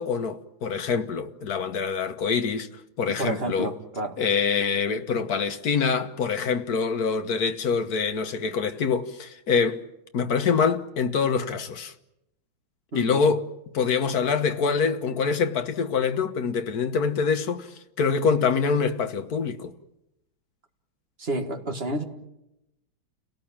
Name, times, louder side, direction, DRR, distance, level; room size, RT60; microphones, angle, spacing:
voice 1, 0.0-2.7 3.0-3.8 4.2-9.8 10.1-11.9 12.9-13.4 13.7-19.7, left 5 dB, 55° left, 1.6 m, -25 dB
voice 2, 3.1-4.2 12.9-13.2 21.2-22.0, right 2 dB, 30° right, 2.1 m, -30 dB
30.0 x 18.0 x 8.8 m
omnidirectional pair, 2.1 m